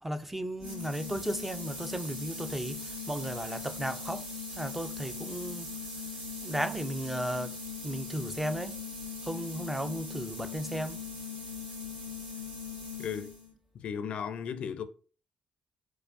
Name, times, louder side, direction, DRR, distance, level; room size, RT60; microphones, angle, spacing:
voice 1, 0.0-5.8 6.4-7.6 7.8-8.8 9.2-11.1, right 1 dB, 10° right, 0.3 m, -35 dB
sound 1, 0.6-13.5, left 4 dB, 55° right, 1.7 m, -40 dB
voice 2, 13.0-13.4 13.7-14.8, left 7 dB, 65° left, 0.4 m, -35 dB
4.6 x 2.1 x 2.5 m
supercardioid pair, 65°, 2 cm